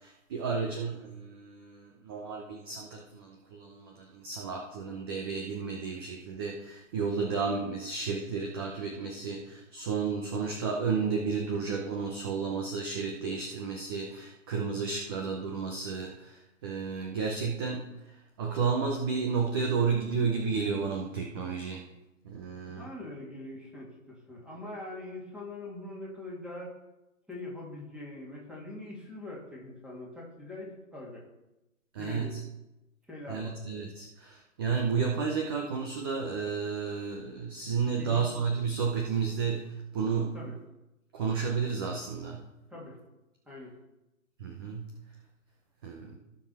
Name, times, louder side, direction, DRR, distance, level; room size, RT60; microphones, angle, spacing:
voice 1, 0.0-17.9 18.4-21.8 22.2-22.9 31.9-32.4 33.3-40.3 41.1-42.4 44.4-44.9 45.8-46.2, right 5 dB, 20° right, 2 dB, 0.6 m, -32 dB
voice 2, 22.7-23.9 24.3-26.7 27.3-31.2 32.0-32.4 33.1-33.6 38.0-38.2 40.3-40.6 42.7-43.0 43.5-43.7, left 2 dB, ahead, -4 dB, 2.3 m, -42 dB
16.0 x 6.2 x 4.2 m, 0.96 s
hypercardioid pair, 150°, 41 cm